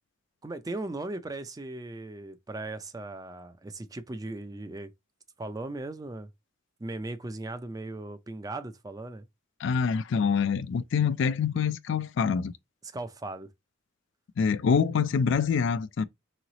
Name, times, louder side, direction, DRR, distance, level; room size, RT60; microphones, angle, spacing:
voice 1, 0.4-4.9 5.4-6.3 6.8-9.3 12.8-13.5, right 2 dB, 20° right, 0.4 m, -38 dB
voice 2, 9.6-12.5 14.4-16.0, left 6 dB, 60° left, 0.3 m, -25 dB
3.9 x 3.1 x 3.8 m
head